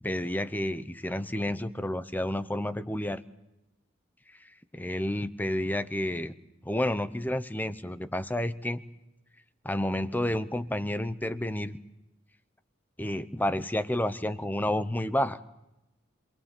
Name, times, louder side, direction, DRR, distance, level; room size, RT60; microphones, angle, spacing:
voice 1, 0.0-3.2 4.7-6.3 6.6-8.8 9.6-11.8 13.0-15.4, left 1 dB, 10° left, 12 dB, 0.8 m, -30 dB
27.0 x 19.5 x 7.4 m, 0.94 s
head